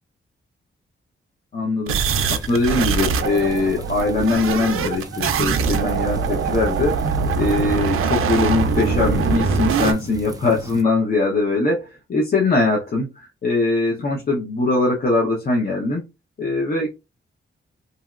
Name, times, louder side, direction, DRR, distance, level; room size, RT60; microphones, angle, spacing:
voice 1, 1.5-2.0 2.3-7.0 7.4-16.0 16.4-16.9, left 3 dB, 45° left, -3 dB, 0.7 m, -21 dB
sound 1, 1.9-9.9, right 5 dB, 90° right, 0.4 m, -22 dB
sound 2, 2.1-10.8, right 1 dB, 15° right, 0.4 m, -37 dB
2.9 x 2.7 x 2.3 m, 0.25 s
wide cardioid pair, 165°, 21 cm